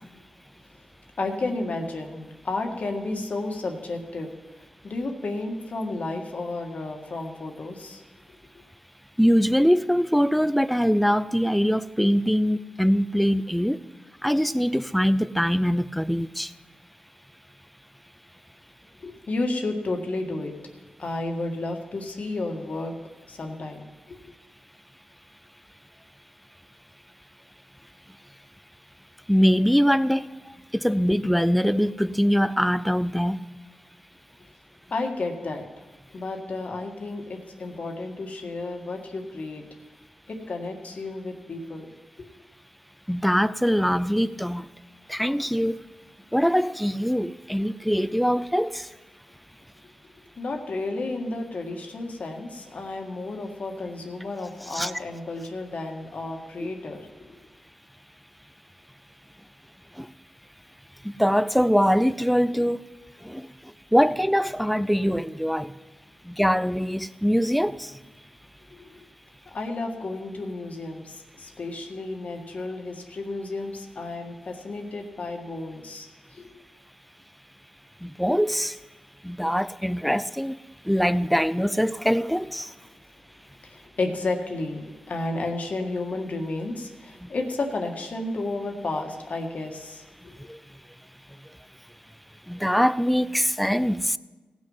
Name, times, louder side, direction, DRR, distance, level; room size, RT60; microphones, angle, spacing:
voice 1, 1.2-8.0 19.0-20.6 21.0-22.9 23.2-24.3 34.9-39.6 40.3-41.9 42.2-42.3 50.4-57.4 68.7-69.0 69.5-76.5 83.6-90.4, left 2 dB, 60° left, 1.7 m, -32 dB
voice 2, 9.2-13.8 14.2-16.5 29.3-30.3 30.7-33.4 43.1-44.7 45.1-45.8 46.3-48.9 54.7-54.9 56.6-56.7 60.0-60.1 61.0-62.8 63.2-63.5 63.9-65.7 66.3-67.9 78.0-78.7 79.2-80.6 80.9-82.7 87.2-87.3 90.5-90.6 92.5-94.2, equal, ahead, 0.4 m, -23 dB
17.5 x 6.3 x 5.6 m
cardioid pair, 70°, 3 cm